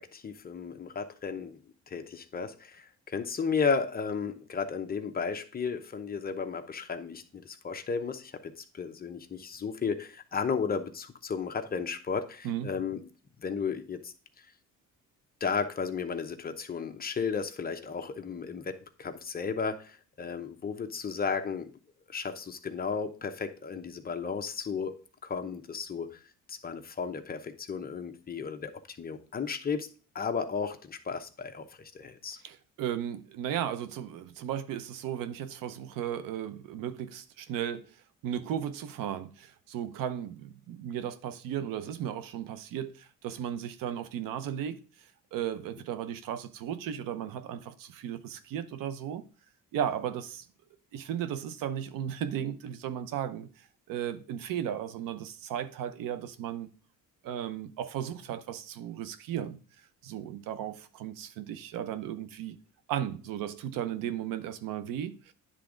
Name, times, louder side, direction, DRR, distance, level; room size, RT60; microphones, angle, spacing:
voice 1, 0.1-1.6 1.9-13.0 13.4-14.1 15.4-21.7 22.1-25.0 25.2-26.2 26.5-29.9 30.1-32.4, left 5 dB, 30° left, 0.8 m, -34 dB
voice 2, 12.4-12.8 32.4-38.0 38.2-44.8 45.3-49.2 49.7-50.5 50.9-56.7 57.2-59.6 60.0-62.6 62.9-65.3, right 10 dB, 90° right, 0.8 m, -35 dB
9.9 x 3.6 x 5.0 m
cardioid pair, 125°, 32 cm